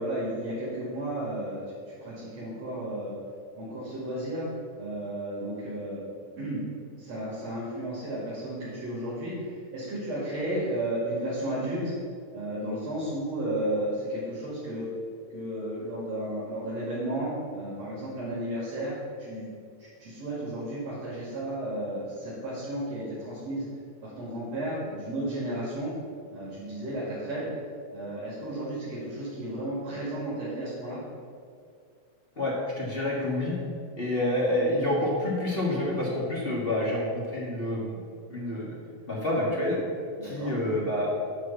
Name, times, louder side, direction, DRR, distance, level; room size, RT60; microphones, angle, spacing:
voice 1, 0.0-3.2 3.6-4.5 4.8-6.0 6.4-6.6 6.9-11.9 12.3-14.9 15.3-18.9 19.2-19.5 19.8-23.7 24.0-25.9 26.3-27.5 27.9-31.0 40.2-40.5, right 1 dB, 65° right, -9 dB, 3.5 m, -33 dB
voice 2, 32.3-33.5 34.0-38.0 38.3-38.8 39.1-39.8 40.2-41.1, left 1 dB, 25° left, -4 dB, 1.5 m, -28 dB
11.0 x 4.5 x 7.0 m, 2.2 s
omnidirectional pair, 3.3 m